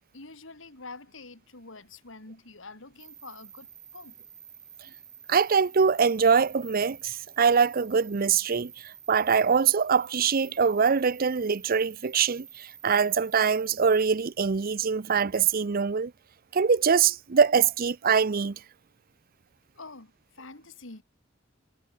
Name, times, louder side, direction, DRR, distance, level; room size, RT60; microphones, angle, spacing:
voice 1, 0.1-4.1 19.7-21.0, left 3 dB, 75° left, 3.2 m, -46 dB
sound 1, 3.0-14.1, right 7 dB, 20° right, 2.2 m, -50 dB
voice 2, 5.3-16.1 16.5-18.6, right 6 dB, 50° right, 0.6 m, -23 dB
head